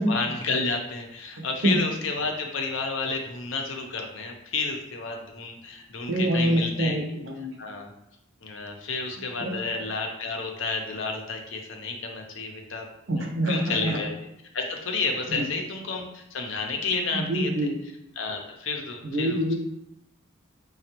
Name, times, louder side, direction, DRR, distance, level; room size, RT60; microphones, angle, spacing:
voice 1, 0.0-7.2 7.6-7.9 8.4-12.9 13.2-14.1 14.5-17.5 18.2-19.4, left 4 dB, 65° left, 3 dB, 0.6 m, -31 dB
voice 2, 1.4-1.8 6.1-7.6 9.4-9.6 13.1-14.0 15.3-15.5 17.1-17.8 19.0-19.5, right 1 dB, 60° right, 2 dB, 0.6 m, -26 dB
5.1 x 2.3 x 2.9 m, 0.83 s
head